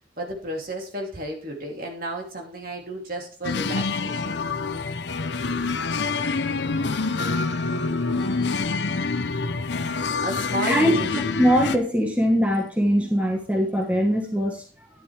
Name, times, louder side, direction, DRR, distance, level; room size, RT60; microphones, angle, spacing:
voice 1, 0.2-4.4 10.2-11.2, right 1 dB, 50° right, 1 dB, 2.8 m, -32 dB
sound 1, 3.4-11.8, left 4 dB, 65° left, 0.7 m, -26 dB
voice 2, 10.7-14.6, equal, 5° right, 1 dB, 1.2 m, -22 dB
11.5 x 10.5 x 3.3 m, 0.41 s
head